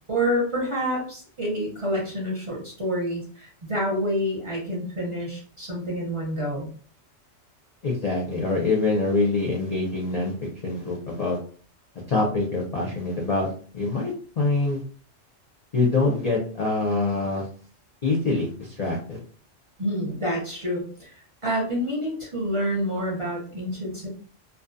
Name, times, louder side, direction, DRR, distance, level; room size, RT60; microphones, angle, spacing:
voice 1, 0.1-6.7 19.8-21.1 21.4-24.1, equal, 30° right, -4 dB, 0.6 m, -28 dB
voice 2, 7.8-11.4 12.1-14.8 15.7-17.5 18.0-19.2, left 3 dB, 50° left, -2 dB, 0.4 m, -25 dB
2.5 x 2.2 x 2.5 m, 0.43 s
omnidirectional pair, 1.3 m